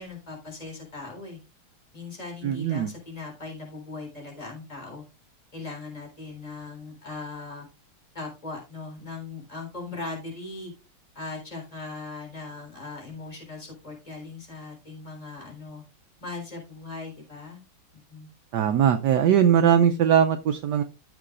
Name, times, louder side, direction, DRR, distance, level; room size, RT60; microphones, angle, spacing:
voice 1, 0.0-1.4 1.9-5.0 5.5-7.7 8.1-10.7 11.2-15.8 16.2-17.6 17.9-18.3, left 3 dB, 15° left, 1 dB, 4.0 m, -39 dB
voice 2, 2.4-2.9 18.5-20.8, right 9 dB, 70° right, 7 dB, 1.0 m, -20 dB
14.0 x 7.0 x 2.5 m, 0.30 s
omnidirectional pair, 2.4 m